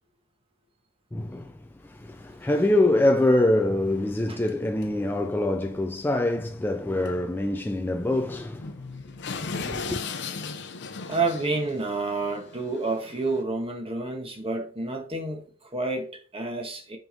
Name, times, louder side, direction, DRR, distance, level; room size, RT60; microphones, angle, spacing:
voice 1, 1.1-8.7 9.3-10.0, left 1 dB, 10° left, 0.3 m, -25 dB
sound 1, 3.1-3.2 3.7-3.8 4.5-4.6 4.8-4.9 5.2-5.4 7.1-7.2 7.4-7.5 8.1-13.4, left 4 dB, 55° left, 0.7 m, -37 dB
voice 2, 11.1-17.0, right 3 dB, 25° right, 1.3 m, -29 dB
5.9 x 5.2 x 3.8 m
head